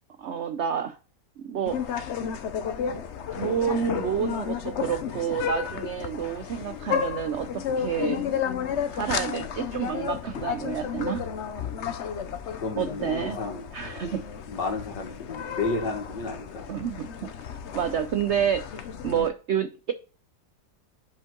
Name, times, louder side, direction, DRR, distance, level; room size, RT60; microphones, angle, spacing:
voice 1, 0.2-1.0 1.4-2.0 3.3-8.3 8.9-11.2 12.8-13.4 13.7-14.2 16.7-17.3 17.7-19.9, right 8 dB, 85° right, 10 dB, 0.6 m, -29 dB
sound 1, 1.6-19.3, left 7 dB, 60° left, 0.8 m, -32 dB
voice 2, 12.5-13.7 14.5-16.7, left 3 dB, 90° left, 2 dB, 2.5 m, -32 dB
7.2 x 5.2 x 3.8 m, 0.35 s
omnidirectional pair, 1.8 m